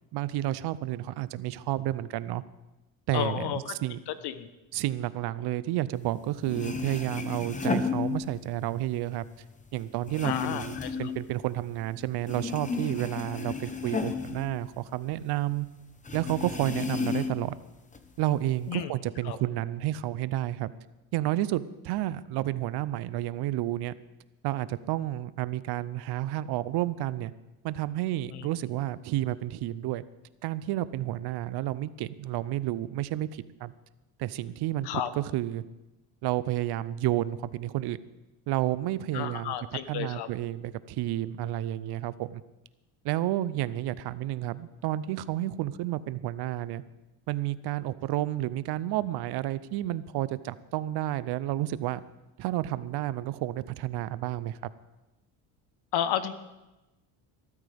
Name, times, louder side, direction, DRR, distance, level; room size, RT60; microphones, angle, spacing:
voice 1, 0.1-2.4 3.1-4.0 4.7-9.3 9.7-15.7 16.1-17.6 18.2-20.7 21.1-23.9 24.4-27.3 27.6-30.0 30.4-33.7 34.2-34.9 35.2-35.6 36.2-38.0 38.5-42.4 43.0-46.8 47.3-52.0 52.4-54.6, right 14 dB, 65° right, 16 dB, 0.7 m, -31 dB
voice 2, 3.1-3.8 4.1-4.5 10.2-11.1 18.7-18.9 19.2-19.4 28.3-28.5 34.8-35.1 39.1-40.3 55.9-56.3, left 10 dB, 65° left, 12 dB, 1.2 m, -32 dB
sound 1, 6.2-6.3 6.4-8.7 9.0-11.9 12.2-15.2 15.5-15.6 16.0-17.5 17.9-18.7, left 5 dB, 15° left, 1.0 m, -33 dB
20.5 x 13.5 x 3.5 m, 1.0 s
cardioid pair, 125°, 43 cm